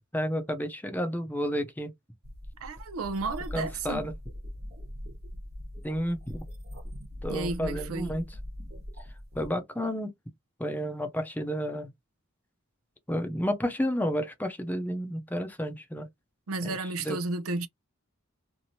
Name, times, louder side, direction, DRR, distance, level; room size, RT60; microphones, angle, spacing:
voice 1, 0.1-1.9 3.5-4.1 5.8-6.5 7.2-8.2 9.3-10.1 10.6-11.9 13.1-16.1 16.6-17.2, equal, 10° left, 0.6 m, -31 dB
sound 1, 2.2-9.5, left 1 dB, 50° right, 1.1 m, -41 dB
voice 2, 2.6-4.1 7.3-8.2 16.5-17.7, right 3 dB, 80° right, 0.6 m, -33 dB
2.8 x 2.6 x 2.9 m
head